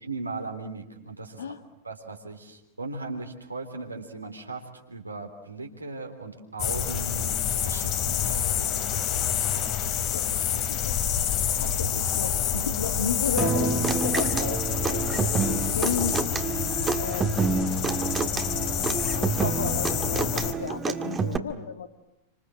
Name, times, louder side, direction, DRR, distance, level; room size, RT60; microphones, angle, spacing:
voice 1, 0.0-1.5 1.8-8.8, right 3 dB, 80° right, 3 dB, 3.6 m, -38 dB
sound 1, 6.6-20.5, left 9 dB, 40° left, 2.9 m, -28 dB
voice 2, 10.1-11.1 11.6-16.2 16.9-17.5 18.7-21.9, left 7 dB, 65° left, 8 dB, 2.2 m, -34 dB
sound 2, 11.0-20.4, right 7 dB, 50° right, 1.6 m, -42 dB
Human voice / Acoustic guitar, 13.4-21.4, right 5 dB, 20° right, 1.9 m, -28 dB
28.5 x 26.0 x 7.8 m, 0.85 s
figure-of-eight pair, 90°, 0 cm